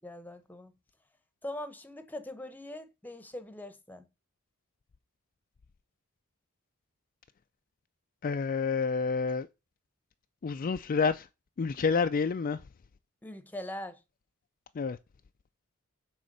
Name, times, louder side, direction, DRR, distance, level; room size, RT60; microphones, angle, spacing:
voice 1, 0.0-0.7 1.4-4.1 13.2-14.0, left 1 dB, 10° left, 0.9 m, -42 dB
voice 2, 8.2-9.5 10.4-11.3 11.6-12.6 14.7-15.0, left 5 dB, 40° left, 0.4 m, -28 dB
9.3 x 3.6 x 6.5 m
head